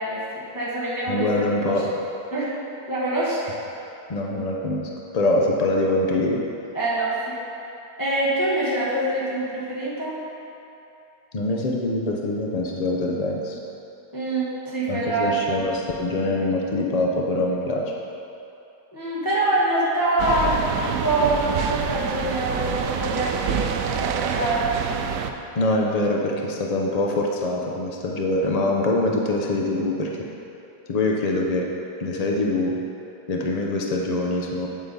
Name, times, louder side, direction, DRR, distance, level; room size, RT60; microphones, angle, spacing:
voice 1, 0.0-1.3 2.3-2.5 2.9-3.6 6.7-7.4 8.0-10.2 14.1-15.3 15.6-15.7 18.9-25.0, right 1 dB, 15° left, -8 dB, 1.1 m, -25 dB
voice 2, 1.1-1.9 4.1-6.4 11.3-13.6 14.9-17.9 25.5-30.3 30.9-31.7 32.0-32.7 33.3-34.7, left 2 dB, 85° left, -1 dB, 0.3 m, -24 dB
sound 1, 20.2-25.3, right 7 dB, 70° right, 0.8 m, -27 dB
8.6 x 7.9 x 4.1 m, 2.8 s
omnidirectional pair, 1.8 m